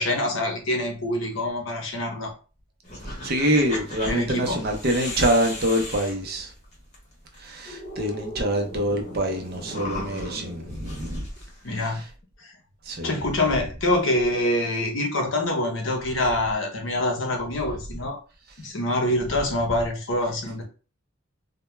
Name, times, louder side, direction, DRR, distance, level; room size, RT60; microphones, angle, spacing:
voice 1, 0.0-2.3 4.1-4.6 11.6-12.0 12.4-12.5 13.0-18.2 18.6-20.6, left 1 dB, 70° left, 0.7 m, -25 dB
sound 1, 2.8-6.9 7.3-7.4 7.6-11.8, left 1 dB, 35° left, 0.9 m, -36 dB
voice 2, 3.0-6.5 7.4-11.3 11.9-12.0 12.9-13.1, right 1 dB, 50° right, 0.6 m, -25 dB
2.2 x 2.1 x 3.0 m
head